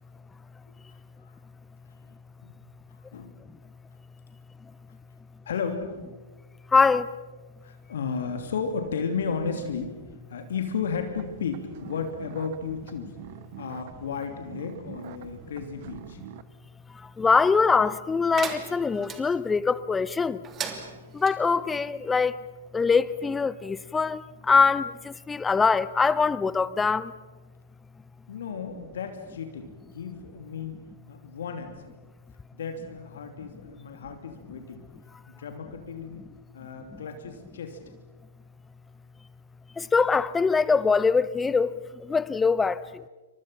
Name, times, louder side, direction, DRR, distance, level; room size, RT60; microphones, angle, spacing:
voice 1, 5.4-6.0 7.6-10.0 10.3-13.1 13.6-16.2 28.3-29.7 29.9-30.8 31.1-31.9 32.5-34.9 35.3-36.2 36.5-37.8, left 5 dB, 60° left, 2.9 m, -33 dB
voice 2, 6.7-7.1 16.9-20.4 21.1-22.4 22.7-27.1 36.9-37.0 39.8-43.0, left 5 dB, 10° left, 0.8 m, -23 dB
sound 1, 11.2-16.4, right 13 dB, 45° right, 1.2 m, -46 dB
sound 2, 18.3-19.2 20.4-21.4, right 7 dB, 20° right, 2.8 m, -36 dB
29.0 x 25.5 x 5.8 m
figure-of-eight pair, 110°, 0 cm